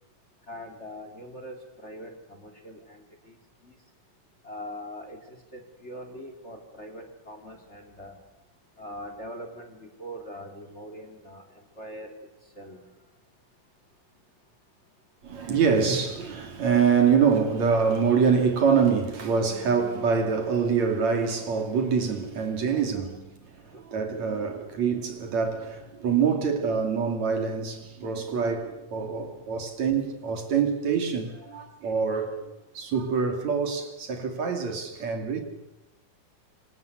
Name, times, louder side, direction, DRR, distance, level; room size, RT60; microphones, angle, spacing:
voice 1, 0.5-3.4 3.6-3.7 4.4-8.2 8.8-12.1 12.5-12.8 22.7-23.1 23.6-23.9 31.4-31.7, equal, 20° left, 3.2 m, -42 dB
voice 2, 15.2-35.4, right 6 dB, 60° right, 4.1 m, -25 dB
27.0 x 26.0 x 8.2 m
omnidirectional pair, 3.6 m